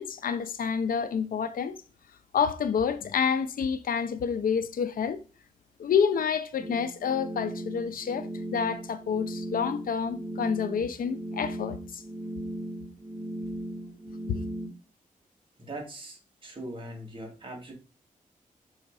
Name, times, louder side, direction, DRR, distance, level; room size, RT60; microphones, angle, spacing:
voice 1, 0.0-1.8 2.3-5.2 5.8-12.0 14.3-14.4, left 6 dB, 75° left, 0.6 m, -28 dB
sound 1, 6.6-14.7, right 1 dB, 15° right, 3.1 m, -37 dB
voice 2, 15.6-17.7, right 1 dB, 35° right, 2.3 m, -41 dB
6.3 x 3.9 x 4.7 m
wide cardioid pair, 125°, 14 cm